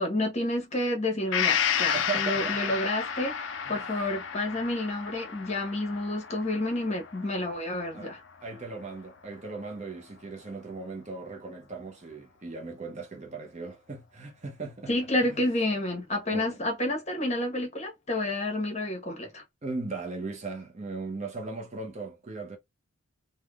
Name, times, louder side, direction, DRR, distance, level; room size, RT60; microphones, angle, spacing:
voice 1, 0.0-8.2 14.9-19.4, left 1 dB, 30° left, 1.0 m, -30 dB
Gong, 1.3-9.0 9.3-9.4, left 8 dB, 55° left, 0.4 m, -32 dB
voice 2, 1.9-2.8 3.6-3.8 7.9-8.1 8.4-14.9 15.2-15.4 16.3-16.6 19.6-22.6, right 4 dB, 30° right, 0.5 m, -38 dB
3.4 x 2.1 x 2.3 m
head